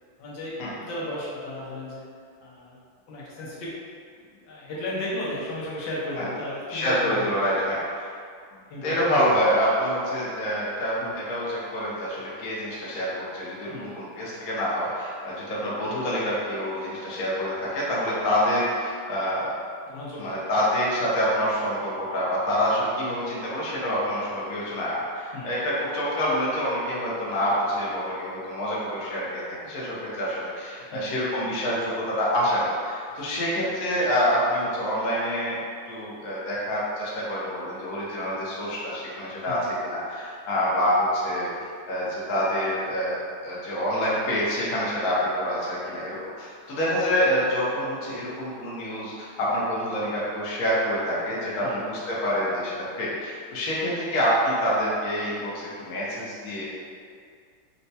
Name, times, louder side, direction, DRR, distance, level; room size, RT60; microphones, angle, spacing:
voice 1, 0.2-2.1 2.4-2.8 3.1-3.7 4.2-7.3 8.5-9.0 9.2-9.3 11.0-11.1 13.7-14.0 19.9-20.3 25.3-25.5 30.9-31.1 39.5-39.6 51.6-51.8 53.7-53.8, left 1 dB, 75° left, -7 dB, 1.4 m, -34 dB
voice 2, 6.7-8.1 8.8-19.5 20.2-35.6 35.9-39.6 39.9-41.5 41.9-43.2 43.4-56.6, equal, 60° left, -7 dB, 1.1 m, -27 dB
4.3 x 2.1 x 2.7 m, 2.2 s
omnidirectional pair, 2.1 m